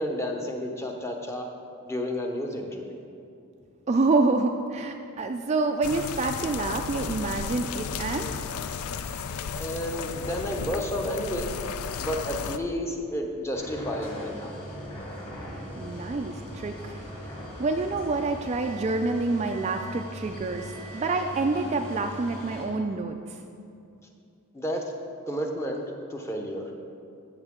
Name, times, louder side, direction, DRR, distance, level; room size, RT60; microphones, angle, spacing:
voice 1, 0.0-1.5 1.9-3.0 8.9-9.2 9.6-11.5 12.0-14.7 24.5-24.9 25.3-26.7, equal, 10° left, 2 dB, 0.8 m, -31 dB
voice 2, 3.9-8.4 15.8-17.0 17.6-23.4, right 3 dB, 30° right, 5 dB, 0.3 m, -27 dB
sound 1, 5.8-12.6, left 6 dB, 80° left, 0.4 m, -34 dB
sound 2, 13.5-22.7, equal, 30° left, 2.4 m, -40 dB
14.5 x 6.9 x 3.7 m, 2.5 s
head